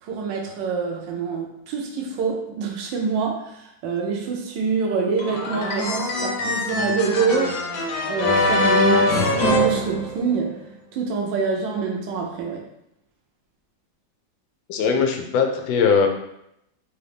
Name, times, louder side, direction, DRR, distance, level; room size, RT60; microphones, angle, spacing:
voice 1, 0.0-7.6 8.1-10.6 10.9-12.6, right 5 dB, 75° right, 0 dB, 1.3 m, -25 dB
sound 1, 5.2-10.6, left 2 dB, 65° left, 0.9 m, -23 dB
voice 2, 14.7-16.1, left 6 dB, 80° left, 3 dB, 1.3 m, -20 dB
3.9 x 2.7 x 3.3 m, 0.79 s
omnidirectional pair, 2.1 m